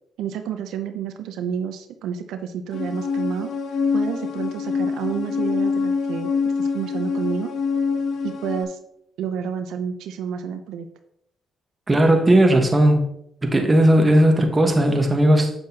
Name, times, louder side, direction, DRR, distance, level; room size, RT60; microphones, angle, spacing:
voice 1, 0.2-3.5 3.9-6.3 6.6-7.5 8.2-8.8 9.2-10.9, right 7 dB, 85° right, 8 dB, 0.6 m, -29 dB
sound 1, 2.7-8.6, left 5 dB, 65° left, 0.8 m, -25 dB
voice 2, 11.9-13.0 13.4-15.5, right 1 dB, 20° right, 3 dB, 1.3 m, -16 dB
7.8 x 6.3 x 2.9 m, 0.74 s
cardioid pair, 90°, 0 cm